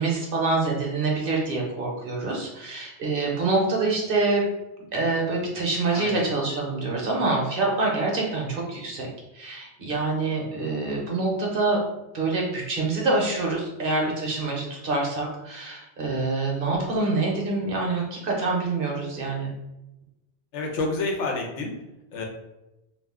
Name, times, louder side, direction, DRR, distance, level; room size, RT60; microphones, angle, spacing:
voice 1, 0.0-4.4 4.9-11.8 12.1-19.5, right 3 dB, 55° right, -1 dB, 0.8 m, -26 dB
voice 2, 5.9-6.3 20.5-21.7 22.1-22.2, left 3 dB, 85° left, 1 dB, 1.0 m, -29 dB
2.4 x 2.3 x 3.5 m, 0.94 s
omnidirectional pair, 1.2 m